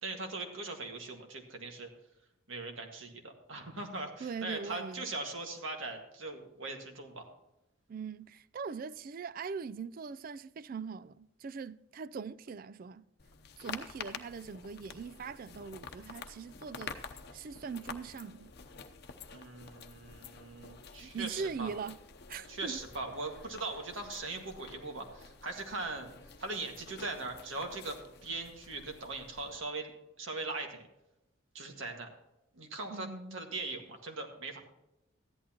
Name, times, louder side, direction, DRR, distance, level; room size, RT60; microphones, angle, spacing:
voice 1, 0.0-1.9 2.5-7.3 19.3-21.7 22.5-26.1 26.4-29.9 30.2-30.9 31.5-32.1 32.5-34.6, right 3 dB, 70° right, 1.9 m, -40 dB
voice 2, 4.2-5.1 7.9-13.0 13.6-17.0 17.3-18.5 21.0-22.0 22.3-22.8 32.9-33.4, right 5 dB, 45° right, 0.3 m, -41 dB
sound 1, 13.2-29.6, left 5 dB, 50° left, 0.8 m, -49 dB
14.5 x 11.0 x 3.0 m
head